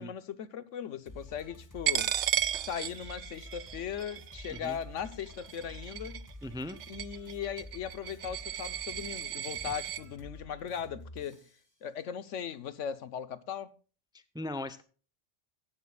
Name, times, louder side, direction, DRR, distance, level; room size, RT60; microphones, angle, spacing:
voice 1, 0.0-2.1 2.6-6.2 6.9-11.4 11.8-13.7, left 8 dB, 80° left, 1.2 m, -38 dB
sound 1, 1.1-11.6, left 1 dB, 15° left, 1.6 m, -49 dB
Coin (dropping), 1.9-10.0, right 11 dB, 75° right, 1.0 m, -35 dB
voice 2, 6.4-6.8 14.3-14.8, left 1 dB, 5° right, 0.6 m, -38 dB
16.0 x 11.5 x 2.3 m
omnidirectional pair, 1.2 m